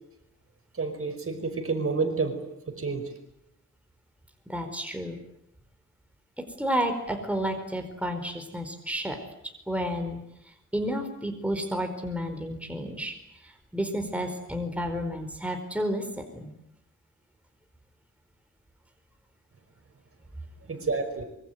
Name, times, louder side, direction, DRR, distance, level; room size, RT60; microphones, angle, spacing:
voice 1, 0.7-2.3 2.7-3.0 20.7-21.3, right 4 dB, 45° right, 7 dB, 5.3 m, -29 dB
voice 2, 4.5-5.2 6.6-9.2 9.7-10.2 10.7-13.1 13.4-16.5, equal, 5° right, 5 dB, 4.6 m, -31 dB
25.5 x 24.0 x 9.4 m, 0.81 s
wide cardioid pair, 95°, 31 cm